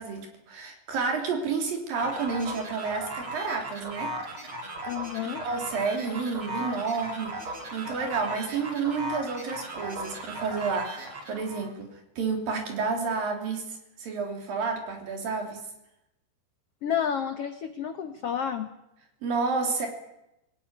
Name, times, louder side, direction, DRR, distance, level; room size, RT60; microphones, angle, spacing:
voice 1, 0.0-4.1 5.4-15.6 19.2-19.9, right 4 dB, 60° right, 3 dB, 4.8 m, -30 dB
sound 1, 2.0-11.7, right 1 dB, 35° right, 3.5 m, -37 dB
voice 2, 4.9-5.4 16.8-18.7, left 8 dB, 85° left, 8 dB, 1.3 m, -30 dB
20.5 x 18.0 x 9.6 m, 0.89 s
omnidirectional pair, 4.6 m